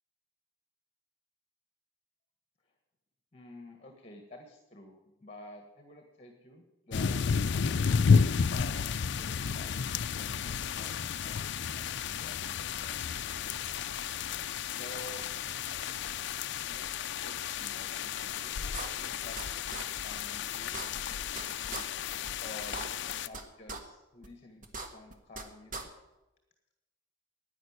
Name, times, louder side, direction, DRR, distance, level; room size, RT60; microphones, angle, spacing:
voice 1, 3.3-8.1 8.4-9.8 10.1-13.6 14.6-16.3 16.6-21.8 22.4-25.9, left 1 dB, 30° left, 4 dB, 1.6 m, -51 dB
sound 1, 6.9-23.3, left 6 dB, 60° left, 0.5 m, -32 dB
sound 2, 18.2-18.3 18.7-19.4 19.7-19.8 20.2-20.3 20.6-21.4 21.7-21.8 22.2-22.3 22.6-23.4 23.7-23.8 24.2-24.3 24.6-25.4 25.7-25.8, right 3 dB, 40° right, 1.6 m, -39 dB
11.0 x 9.6 x 9.7 m, 1.0 s
head